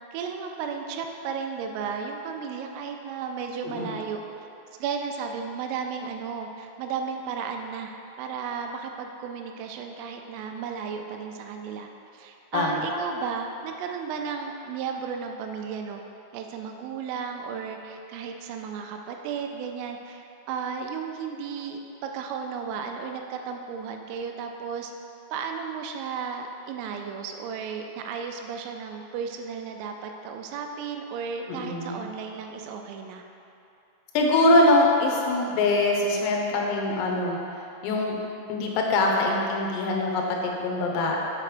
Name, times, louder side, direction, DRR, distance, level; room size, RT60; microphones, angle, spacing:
voice 1, 0.1-4.2 4.8-16.0 16.3-24.9 25.3-33.2, right 6 dB, 85° right, 3 dB, 3.1 m, -34 dB
voice 2, 31.5-32.0 34.2-37.4 37.8-38.2 38.5-41.2, left 2 dB, 90° left, 0 dB, 3.6 m, -23 dB
7.7 x 5.2 x 4.9 m, 2.7 s
omnidirectional pair, 5.8 m